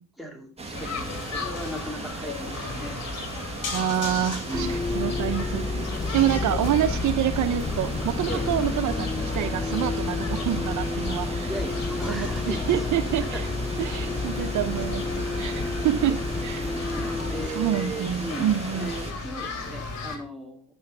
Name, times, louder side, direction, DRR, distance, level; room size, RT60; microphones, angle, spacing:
voice 1, 0.2-3.0 4.5-4.9 8.3-8.5 11.5-13.0 13.3-13.4 16.1-16.2 17.2-20.6, right 1 dB, ahead, 1 dB, 2.5 m, -37 dB
sound 1, 0.6-19.1, right 3 dB, 20° right, 1.9 m, -37 dB
sound 2, 0.7-20.2, left 4 dB, 55° left, 3.1 m, -36 dB
voice 2, 3.7-5.9 6.1-11.5 12.1-13.5 13.8-16.7 17.5-18.9, right 11 dB, 75° right, 11 dB, 0.8 m, -27 dB
Bus, 4.5-17.5, left 3 dB, 15° left, 0.4 m, -30 dB
9.9 x 5.6 x 5.6 m, 0.42 s
cardioid pair, 90°, 30 cm